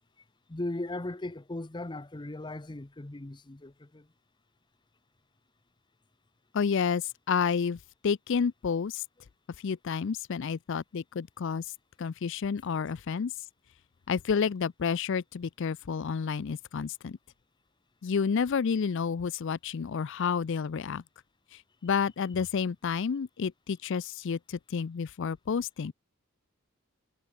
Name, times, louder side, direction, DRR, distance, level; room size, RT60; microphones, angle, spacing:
voice 1, 0.5-4.1, left 2 dB, 20° left, 0.7 m, -37 dB
voice 2, 6.5-9.0 9.6-11.7 12.0-13.3 14.1-17.2 18.0-21.0 21.5-25.9, left 6 dB, 60° left, 0.4 m, -30 dB
head